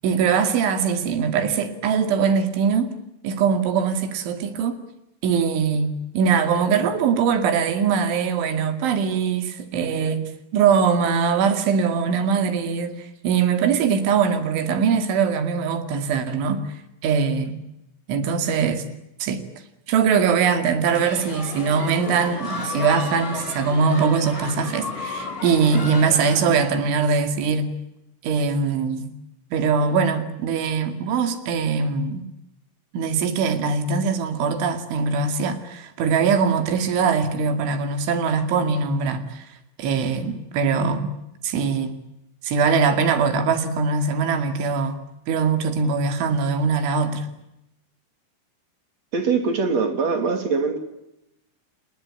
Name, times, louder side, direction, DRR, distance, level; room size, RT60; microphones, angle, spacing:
voice 1, 0.0-2.9 3.2-4.8 5.2-16.6 17.0-17.6 18.1-18.8 19.2-19.4 19.9-27.7 28.2-29.1 29.5-32.3 32.9-39.5 39.8-41.1 41.4-41.9 42.4-45.0 45.3-47.3, right 5 dB, 80° right, 4.8 m, -22 dB
sound 1, 20.9-26.7, left 4 dB, 65° left, 7.8 m, -34 dB
sound 2, 22.4-22.8 23.9-24.1 24.3-24.6 25.6-26.1 26.4-27.1, left 1 dB, 5° right, 4.1 m, -36 dB
voice 2, 49.1-50.8, right 4 dB, 40° right, 3.3 m, -22 dB
29.5 x 20.0 x 8.8 m
omnidirectional pair, 5.3 m